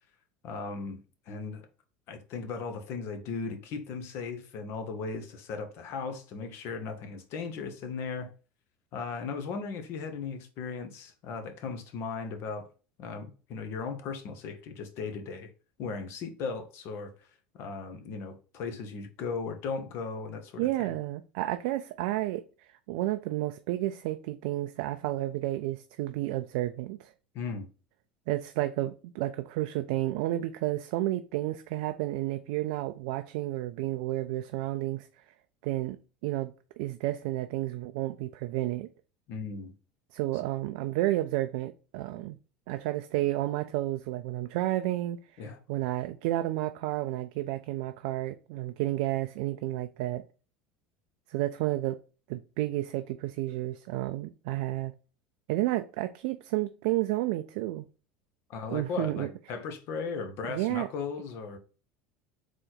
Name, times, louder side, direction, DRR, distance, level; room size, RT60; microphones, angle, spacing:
voice 1, 0.4-1.0 1.3-1.7 2.1-8.3 8.9-12.7 13.0-15.5 15.8-17.1 17.5-20.9 27.3-27.7 39.3-39.7 45.4-45.6 58.5-61.6, left 4 dB, 55° left, 0.9 m, -37 dB
voice 2, 20.6-22.4 22.9-27.1 28.3-35.1 35.6-36.0 36.2-38.9 40.1-42.4 42.7-45.4 45.7-50.2 51.3-52.0 52.3-54.9 55.5-57.9 58.7-59.3 60.5-60.9, right 16 dB, 65° right, 0.3 m, -31 dB
3.9 x 3.2 x 3.9 m
hypercardioid pair, 75°, 5 cm